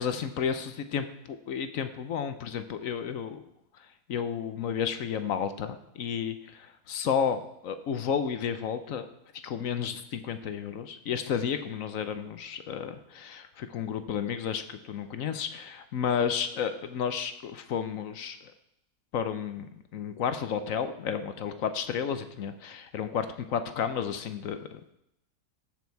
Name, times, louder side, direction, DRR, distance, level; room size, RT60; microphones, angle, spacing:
voice 1, 0.0-3.4 4.1-6.4 6.9-9.0 9.4-18.4 19.1-25.0, left 7 dB, 65° left, 10 dB, 1.1 m, -32 dB
14.0 x 6.2 x 4.6 m, 0.80 s
omnidirectional pair, 1.7 m